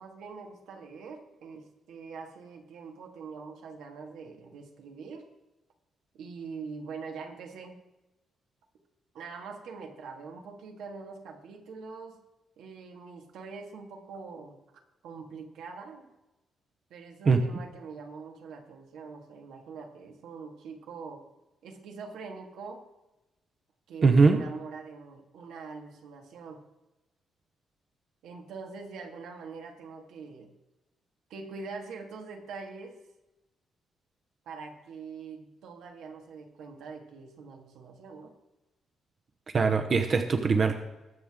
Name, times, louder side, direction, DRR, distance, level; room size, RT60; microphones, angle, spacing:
voice 1, 0.0-5.3 6.1-7.8 9.1-12.2 12.6-14.6 15.0-16.1 16.9-21.3 21.6-22.9 23.9-26.6 28.2-30.5 31.3-33.0 34.5-38.3, right 4 dB, 85° right, 3 dB, 2.0 m, -43 dB
voice 2, 24.0-24.4 39.5-40.7, right 4 dB, 35° right, 6 dB, 0.9 m, -21 dB
20.0 x 7.8 x 3.7 m, 1.0 s
cardioid pair, 155°, 0 cm